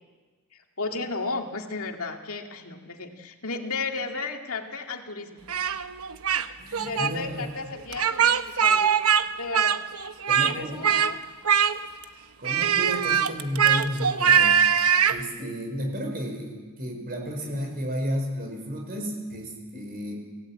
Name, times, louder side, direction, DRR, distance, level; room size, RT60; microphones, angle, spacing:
voice 1, 0.5-5.4 6.8-9.0 9.3-9.8 10.4-11.2, left 3 dB, 70° left, 3 dB, 2.3 m, -34 dB
Speech, 5.5-6.5 6.7-7.1 7.9-9.2 9.5-10.5 10.8-11.1 11.4-12.0 12.4-15.2, right 7 dB, 80° right, 1.0 m, -22 dB
voice 2, 6.6-7.5 10.3-11.0 12.4-14.6 15.1-20.1, equal, 45° right, 2 dB, 5.2 m, -32 dB
25.0 x 18.0 x 8.7 m, 1.4 s
head